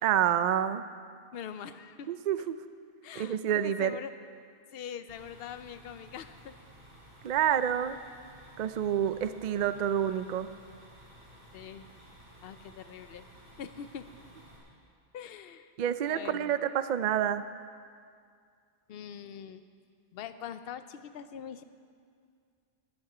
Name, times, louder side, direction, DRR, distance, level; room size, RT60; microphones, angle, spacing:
voice 1, 0.0-0.8 2.1-2.6 3.2-4.0 7.2-8.0 8.6-10.5 15.8-17.4, right 9 dB, 55° right, 12 dB, 0.5 m, -28 dB
voice 2, 1.3-2.1 2.4-2.5 3.0-4.1 4.7-6.5 11.5-11.9 12.4-13.3 13.6-14.1 15.1-15.7 16.0-16.5 18.9-19.6 20.1-21.6, left 8 dB, 70° left, 11 dB, 0.8 m, -43 dB
sound 1, 5.1-14.6, right 1 dB, 30° right, 3.8 m, -54 dB
18.0 x 11.5 x 4.9 m, 2.2 s
omnidirectional pair, 1.1 m